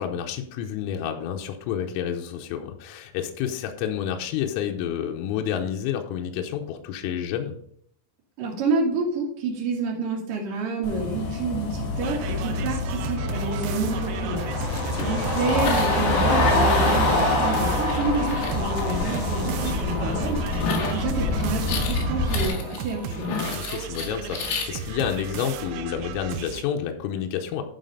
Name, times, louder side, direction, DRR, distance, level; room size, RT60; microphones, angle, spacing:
voice 1, 0.0-7.6 14.8-15.2 23.6-27.6, left 9 dB, 85° left, 4 dB, 3.5 m, -29 dB
voice 2, 8.4-14.5 15.0-20.4 20.8-23.4, right 3 dB, 55° right, -3 dB, 2.7 m, -28 dB
sound 1, 10.8-22.5, left 2 dB, 45° left, 2.9 m, -25 dB
sound 2, 12.0-26.6, right 8 dB, 80° right, 3.1 m, -35 dB
sound 3, 14.5-24.7, left 4 dB, 70° left, 3.7 m, -33 dB
12.0 x 4.2 x 5.3 m, 0.66 s
omnidirectional pair, 5.8 m